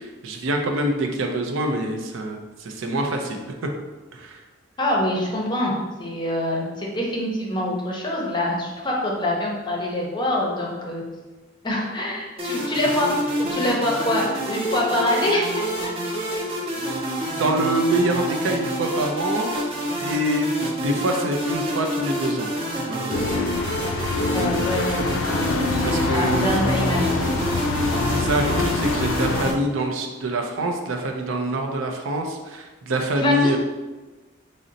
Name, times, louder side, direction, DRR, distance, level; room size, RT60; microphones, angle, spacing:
voice 1, 0.0-3.5 4.1-4.4 16.7-19.5 20.0-20.5 20.8-22.5 22.8-23.4 25.8-26.7 28.1-33.6, right 1 dB, 85° right, 3 dB, 0.5 m, -25 dB
voice 2, 4.8-5.7 6.0-11.0 11.6-13.1 13.4-15.6 24.3-25.2 25.6-27.3 33.2-33.6, left 1 dB, 25° left, -2 dB, 0.6 m, -25 dB
sound 1, 12.4-29.5, equal, 30° right, 0.6 m, -27 dB
sound 2, 23.1-29.5, left 3 dB, 80° left, 0.4 m, -25 dB
3.8 x 2.1 x 3.9 m, 1.2 s
head